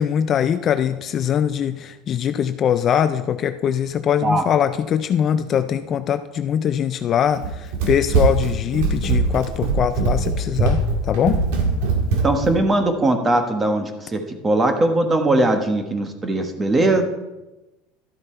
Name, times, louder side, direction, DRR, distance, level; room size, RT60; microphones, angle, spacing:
voice 1, 0.0-11.4, left 9 dB, 30° left, 11 dB, 0.4 m, -22 dB
Run, 7.3-12.6, right 3 dB, 75° right, 1.8 m, -21 dB
voice 2, 12.2-17.0, right 2 dB, 15° right, 6 dB, 1.2 m, -20 dB
12.0 x 7.9 x 4.4 m, 1.0 s
supercardioid pair, 150°, 0 cm